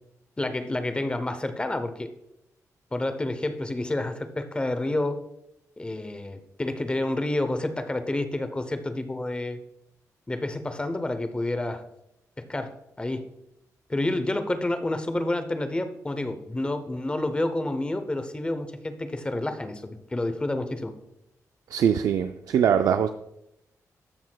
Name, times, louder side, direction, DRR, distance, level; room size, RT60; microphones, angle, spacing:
voice 1, 0.4-2.1 2.9-5.2 5.8-9.6 10.3-11.8 12.4-13.3 13.9-20.9, left 1 dB, 15° left, 9 dB, 0.7 m, -29 dB
voice 2, 21.7-23.1, right 8 dB, 85° right, 8 dB, 0.3 m, -22 dB
13.0 x 6.2 x 2.3 m, 0.83 s
wide cardioid pair, 120°, 6 cm